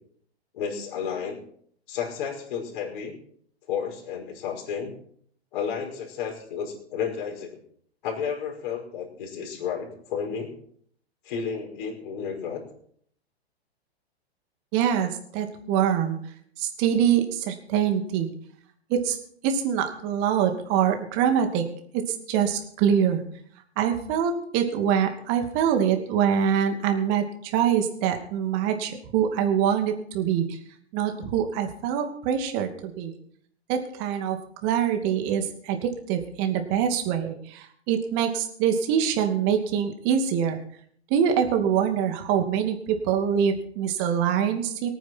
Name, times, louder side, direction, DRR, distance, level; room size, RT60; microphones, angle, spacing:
voice 1, 0.5-1.4 1.9-3.1 3.7-4.9 5.5-7.6 8.0-10.5 11.2-12.6, left 7 dB, 50° left, 0 dB, 5.4 m, -32 dB
voice 2, 14.7-16.2 16.6-18.3 18.9-19.2 19.4-21.7 21.9-23.2 23.8-30.6 30.9-33.1 33.7-40.6 41.1-44.9, right 8 dB, 35° right, 5 dB, 2.5 m, -24 dB
23.5 x 9.6 x 4.6 m, 0.63 s
figure-of-eight pair, 110°, 32 cm